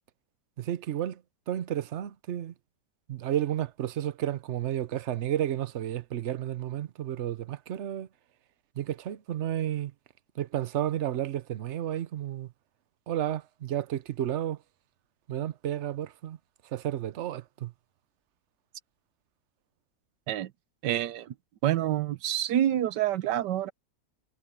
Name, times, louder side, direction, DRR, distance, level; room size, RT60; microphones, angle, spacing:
voice 1, 0.6-1.2 1.5-2.5 3.1-8.1 8.8-9.9 10.4-12.5 13.1-14.6 15.3-16.4 16.7-17.7, right 11 dB, 55° right, 0.8 m, -32 dB
voice 2, 20.8-21.3 21.6-23.7, right 12 dB, 90° right, 1.4 m, -27 dB
omnidirectional pair, 1.8 m